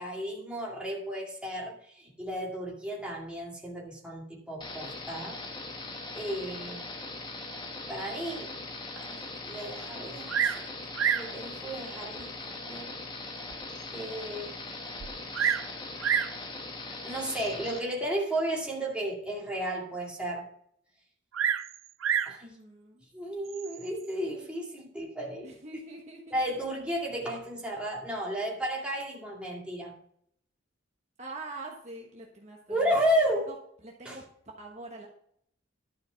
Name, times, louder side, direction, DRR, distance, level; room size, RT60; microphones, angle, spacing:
voice 1, 0.0-5.4 6.1-6.8 7.9-8.5 8.9-10.6 11.1-12.9 13.9-14.6 16.9-20.5 22.3-22.5 23.1-25.5 26.3-29.9 32.7-33.5 34.0-34.2, equal, 5° right, -3 dB, 2.3 m, -33 dB
sound 1, 4.6-17.8, left 2 dB, 25° left, 1.1 m, -40 dB
Bird vocalization bird call bird song, 10.3-10.7 11.0-11.3 12.2-12.3 12.9-13.0 13.5-13.6 13.8-13.9 15.0-15.7 16.0-16.4 17.4-17.7 21.3-22.4 23.5-23.9, right 8 dB, 80° right, 0.6 m, -28 dB
voice 2, 15.0-15.5 22.4-23.1 25.4-26.6 31.2-32.9 33.5-33.6 33.8-35.1, right 2 dB, 35° right, 0 dB, 1.2 m, -45 dB
11.5 x 5.2 x 5.7 m, 0.66 s
head